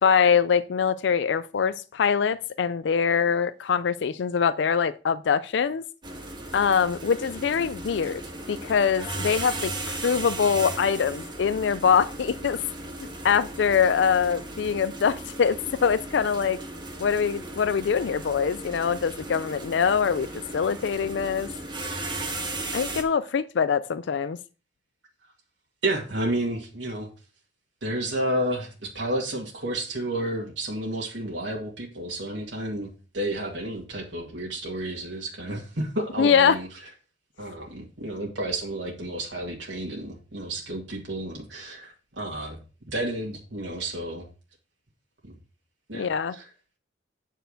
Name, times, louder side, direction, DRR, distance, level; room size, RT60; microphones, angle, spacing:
voice 1, 0.0-5.8 6.5-8.2 8.5-12.6 13.2-16.6 17.0-20.3 20.5-21.5 22.7-24.4 36.2-36.6 45.9-46.4, left 6 dB, 70° left, 0.4 m, -23 dB
sound 1, 6.0-23.0, right 2 dB, 25° right, 1.7 m, -36 dB
voice 2, 25.8-27.1 27.8-36.7 37.4-42.6 42.9-44.3 45.9-46.4, right 1 dB, 70° right, 2.0 m, -31 dB
9.0 x 4.6 x 6.4 m
head